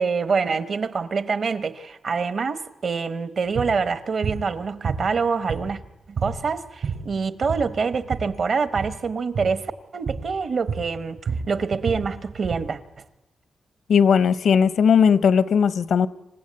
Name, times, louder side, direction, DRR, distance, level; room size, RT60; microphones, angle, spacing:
voice 1, 0.0-5.8 6.1-11.2 11.5-12.8, right 5 dB, 50° right, 1.0 m, -26 dB
sound 1, 3.5-3.8 4.2-4.5 4.8-5.9 6.2-6.4 6.7-7.1 7.4-8.3 8.7-9.0 9.3-9.6 10.1-10.3 10.7-12.7, right 5 dB, 80° right, 6.1 m, -29 dB
voice 2, 13.9-16.1, left 7 dB, 75° left, 0.7 m, -17 dB
27.0 x 15.5 x 8.6 m
wide cardioid pair, 150°, 0 cm